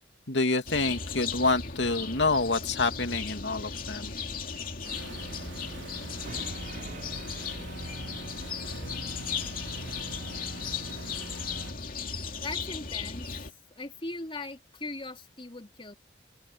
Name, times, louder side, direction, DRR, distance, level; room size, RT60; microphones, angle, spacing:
voice 1, 0.3-4.1, left 3 dB, 85° left, 2.5 m, -27 dB
sound 1, 0.7-13.5, left 5 dB, 50° left, 2.8 m, -36 dB
sound 2, 4.8-11.7, right 3 dB, 85° right, 3.1 m, -44 dB
sound 3, 6.2-10.5, right 2 dB, 50° right, 4.5 m, -48 dB
voice 2, 12.2-13.4 13.8-15.9, left 2 dB, 30° left, 3.4 m, -39 dB
open air
head